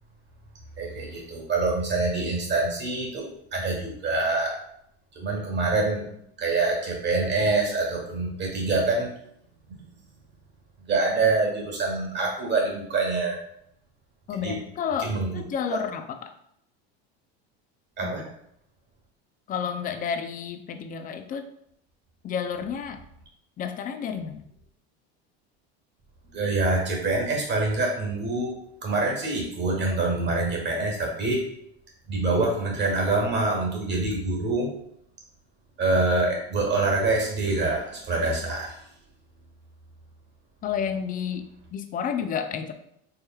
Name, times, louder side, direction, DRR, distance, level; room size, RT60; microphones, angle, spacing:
voice 1, 0.8-4.6 5.1-6.1 6.4-9.1 9.7-9.8 10.9-13.4 14.4-14.6 15.0-15.4 15.7-15.8 18.0-18.2 26.3-28.6 28.8-31.4 32.1-34.7 35.8-38.8, right 3 dB, 35° right, 0 dB, 1.5 m, -25 dB
voice 2, 14.3-16.3 18.0-18.2 19.5-21.4 22.2-23.0 23.6-24.4 40.6-42.7, left 7 dB, 25° left, 8 dB, 0.4 m, -31 dB
4.6 x 3.1 x 2.3 m, 0.72 s
supercardioid pair, 105°, 32 cm